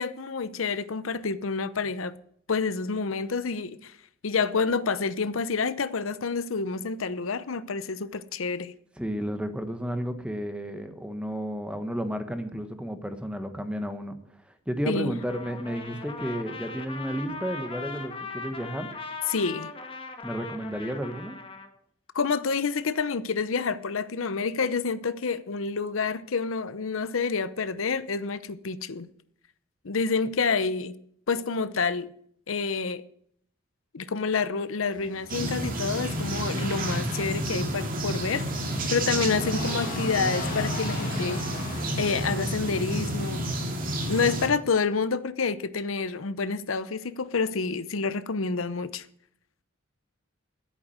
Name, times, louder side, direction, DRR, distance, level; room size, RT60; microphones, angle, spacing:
voice 1, 0.0-2.1 2.5-3.9 4.2-8.7 14.9-15.1 19.3-19.7 22.1-29.1 29.8-31.0 31.3-32.1 32.5-33.0 33.9-38.5 38.9-41.5 42.0-43.6 44.1-49.0, left 4 dB, 85° left, 0.8 m, -28 dB
voice 2, 9.0-14.1 14.7-18.9 20.2-21.4, equal, 5° right, 1.2 m, -32 dB
Trumpet, 15.2-21.7, left 4 dB, 25° left, 1.4 m, -39 dB
sound 1, 34.9-44.6, left 2 dB, 45° left, 2.1 m, -41 dB
sound 2, 35.3-44.5, right 1 dB, 45° right, 2.4 m, -30 dB
11.0 x 8.6 x 7.9 m
head